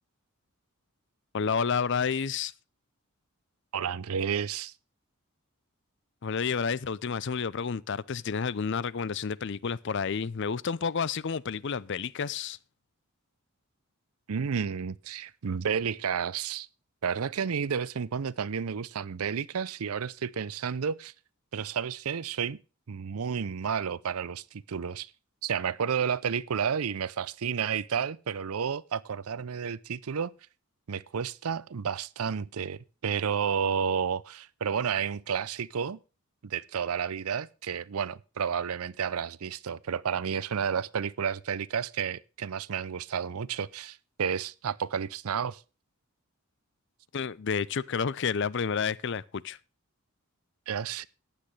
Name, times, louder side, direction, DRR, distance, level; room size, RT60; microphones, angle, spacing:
voice 1, 1.3-2.5 6.2-12.6 47.1-49.6, left 6 dB, 55° left, 0.5 m, -30 dB
voice 2, 3.7-4.7 14.3-16.7 17.0-21.1 21.5-22.6 22.9-25.1 25.4-30.3 30.9-36.0 36.4-45.6 50.7-51.1, right 7 dB, 80° right, 0.5 m, -31 dB
15.0 x 10.0 x 3.3 m
head